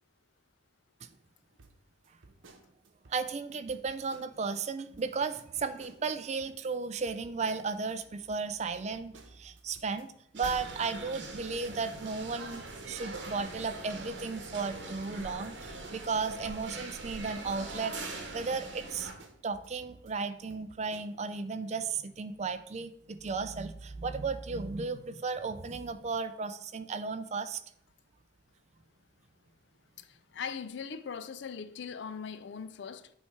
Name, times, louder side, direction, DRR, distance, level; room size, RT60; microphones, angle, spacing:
sound 1, 1.6-3.4 3.7-4.6 4.9-5.1 5.4-6.7 7.1-8.0 8.3-11.3 11.6-14.7 15.0-18.0 18.3-18.5 18.8-20.2 20.5-21.4, right 3 dB, 90° right, 0.8 m, -58 dB
voice 1, 3.1-19.1 19.4-27.6, right 4 dB, 35° right, 0.4 m, -35 dB
sound 2, 10.3-19.1, right 2 dB, 65° right, 1.1 m, -42 dB
voice 2, 30.0-33.1, left 6 dB, 65° left, 0.4 m, -40 dB
8.4 x 3.3 x 4.5 m
head